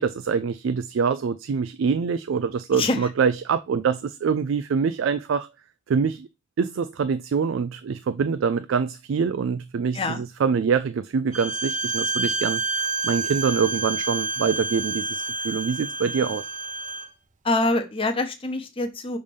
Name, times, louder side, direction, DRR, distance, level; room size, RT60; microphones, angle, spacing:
voice 1, 0.0-5.5 5.9-6.3 6.6-16.4, right 6 dB, 75° right, 0.4 m, -25 dB
voice 2, 2.7-3.1 9.9-10.2 17.4-19.2, left 2 dB, 30° left, 0.7 m, -25 dB
Bowed string instrument, 11.3-17.1, right 3 dB, 40° right, 0.7 m, -29 dB
5.5 x 3.3 x 5.2 m
head